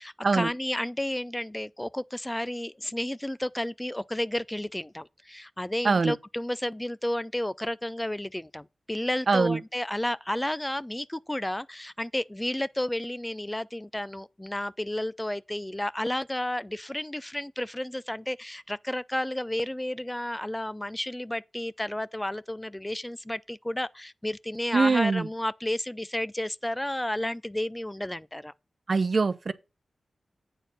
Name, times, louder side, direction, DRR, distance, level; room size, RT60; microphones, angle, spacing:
voice 1, 0.0-28.5, left 1 dB, 15° left, 0.3 m, -32 dB
voice 2, 9.3-9.6 24.7-25.2 28.9-29.5, right 4 dB, 60° right, 0.6 m, -23 dB
8.1 x 4.3 x 6.3 m
cardioid pair, 45°, 0 cm